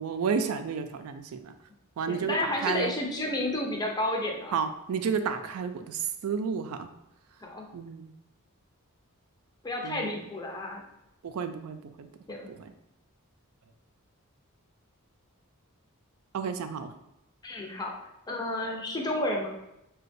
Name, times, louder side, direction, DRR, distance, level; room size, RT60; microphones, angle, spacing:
voice 1, 0.0-1.5 2.0-2.9 4.5-6.9 7.7-8.1 9.8-10.2 11.2-12.1 12.5-12.7 16.3-16.9, right 6 dB, 70° right, 8 dB, 0.3 m, -31 dB
voice 2, 2.1-4.6 7.4-7.7 9.6-10.8 12.3-12.5 17.4-17.9 18.3-19.6, left 1 dB, 20° left, 0 dB, 0.5 m, -31 dB
4.0 x 2.2 x 2.6 m, 0.88 s
head